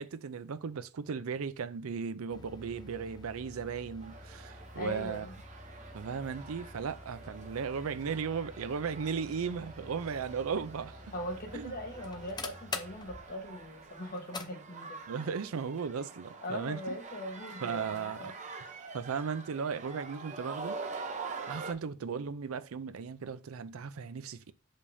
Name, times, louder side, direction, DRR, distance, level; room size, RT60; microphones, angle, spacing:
voice 1, 0.0-5.3 5.9-11.1 11.5-11.7 15.1-16.8 17.6-18.3 18.9-20.8 21.5-24.5, right 6 dB, 85° right, 0.5 m, -36 dB
sound 1, 2.3-14.5, left 3 dB, 20° left, 0.5 m, -47 dB
sound 2, 4.0-21.7, right 4 dB, 35° right, 0.8 m, -46 dB
voice 2, 4.8-5.4 11.1-15.0 16.4-18.4, left 1 dB, 45° left, 1.2 m, -40 dB
7.0 x 5.1 x 2.7 m
head